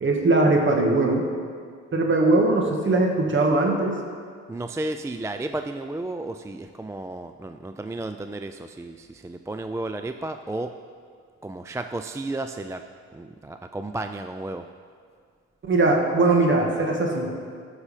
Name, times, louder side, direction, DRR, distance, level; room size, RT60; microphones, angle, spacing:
voice 1, 0.0-1.2 1.9-4.0 15.7-17.3, right 2 dB, 40° right, 1 dB, 1.8 m, -20 dB
voice 2, 4.5-10.8 11.4-12.8 13.1-14.7, right 2 dB, 10° right, 7 dB, 0.3 m, -33 dB
14.0 x 6.4 x 5.0 m, 2.1 s
cardioid pair, 90°, 30 cm